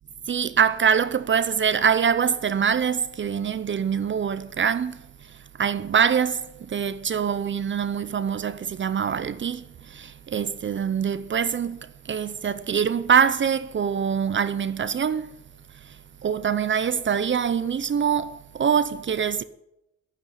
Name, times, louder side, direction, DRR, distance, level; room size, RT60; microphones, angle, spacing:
voice 1, 0.3-5.0 5.6-6.4 6.7-9.6 9.9-11.8 12.1-15.3 16.2-19.4, right 7 dB, 40° right, 0.7 m, -24 dB
11.0 x 9.4 x 9.6 m
cardioid pair, 90°, 30 cm